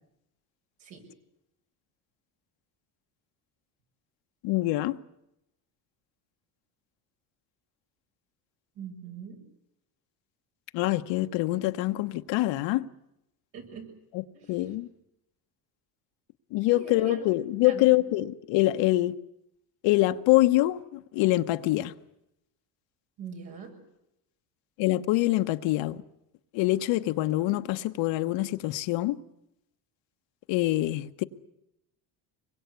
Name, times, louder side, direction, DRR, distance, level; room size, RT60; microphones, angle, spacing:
voice 1, 4.4-5.0 10.7-12.9 14.1-14.2 14.5-14.9 16.5-19.2 19.8-21.9 24.8-26.0 26.5-29.2 30.5-31.2, left 17 dB, 75° left, 1.1 m, -25 dB
voice 2, 8.8-9.4 13.5-13.9 14.3-14.5 16.7-17.2 17.6-17.8 23.2-23.7, right 6 dB, 75° right, 7.3 m, -41 dB
25.0 x 22.0 x 8.2 m
cardioid pair, 110°, 44 cm